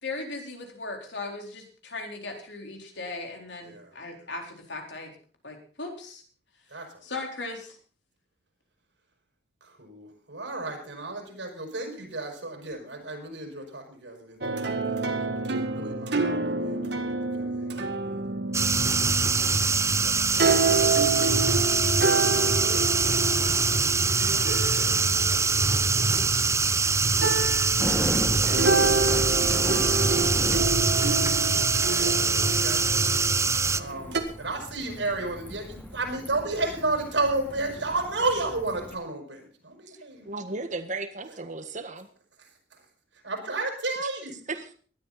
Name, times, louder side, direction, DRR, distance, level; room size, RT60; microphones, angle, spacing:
voice 1, 0.0-5.1 5.4-6.2 7.0-7.8, left 3 dB, 75° left, 2 dB, 4.1 m, -37 dB
voice 2, 3.6-3.9 6.7-7.0 9.6-14.4 14.9-15.2 15.5-17.0 17.4-21.4 22.0-26.8 32.0-33.3 33.7-40.5 42.4-42.8 43.2-44.4, right 2 dB, 85° right, 3 dB, 6.1 m, -34 dB
sound 1, 14.4-26.7 27.2-34.2, right 3 dB, 70° right, 1.8 m, -29 dB
sound 2, 18.5-33.8, right 4 dB, 15° right, 0.6 m, -24 dB
Bicycle, 24.1-38.9, equal, 10° left, 2.4 m, -37 dB
voice 3, 40.3-42.1 44.5-44.7, right 3 dB, 45° right, 9 dB, 1.6 m, -35 dB
19.0 x 12.5 x 4.2 m, 0.42 s
head